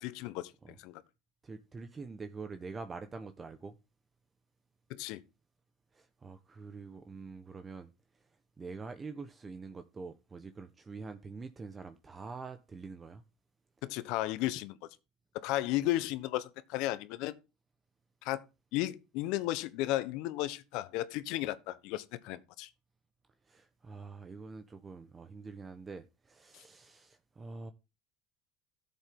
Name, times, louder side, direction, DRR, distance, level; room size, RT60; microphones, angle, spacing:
voice 1, 0.0-1.0 4.9-5.2 13.8-14.8 15.4-17.4 18.2-18.4 18.7-22.7, left 16 dB, 65° left, 1.2 m, -34 dB
voice 2, 1.4-3.8 5.9-8.3 8.6-13.2 23.4-27.7, right 4 dB, 25° right, 1.2 m, -45 dB
13.0 x 7.8 x 3.8 m
supercardioid pair, 90°, 0 cm